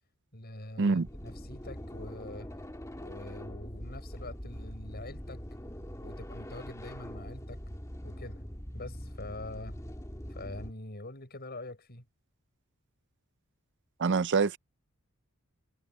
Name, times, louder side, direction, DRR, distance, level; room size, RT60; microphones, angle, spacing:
voice 1, 0.3-2.5 3.0-5.4 6.0-7.6 8.0-8.4 8.7-9.8 10.3-12.1, left 2 dB, 45° left, 6.9 m, -44 dB
sound 1, 1.0-10.7, equal, 15° left, 2.4 m, -43 dB
voice 2, 14.0-14.6, right 4 dB, 55° right, 0.5 m, -25 dB
head